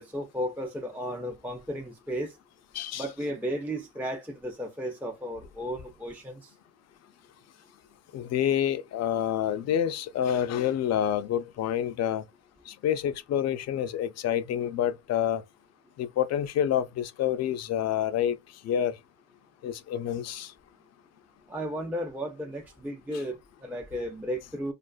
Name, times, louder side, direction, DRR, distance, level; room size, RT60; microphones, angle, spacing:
voice 1, 0.0-2.4 3.0-6.5 21.5-24.7, equal, 5° right, 0.5 m, -34 dB
voice 2, 2.7-3.1 8.1-12.2 12.7-15.4 16.0-18.4 18.6-19.0 19.6-20.5, left 10 dB, 60° left, 0.4 m, -28 dB
2.4 x 2.3 x 2.3 m
cardioid pair, 90°, 30 cm